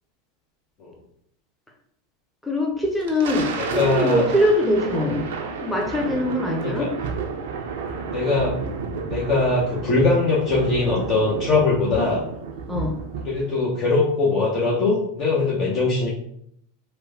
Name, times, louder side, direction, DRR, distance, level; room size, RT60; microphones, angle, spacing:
voice 1, 2.4-6.9 12.7-13.0, left 1 dB, 5° left, -1 dB, 0.7 m, -23 dB
Thunder, 2.8-13.6, right 5 dB, 70° right, 0.4 m, -31 dB
voice 2, 3.6-4.3 4.9-5.1 6.6-6.9 8.1-8.6 9.1-12.2 13.2-16.1, left 3 dB, 45° left, -5 dB, 0.7 m, -21 dB
3.0 x 2.1 x 2.7 m, 0.69 s
hypercardioid pair, 95°, 0 cm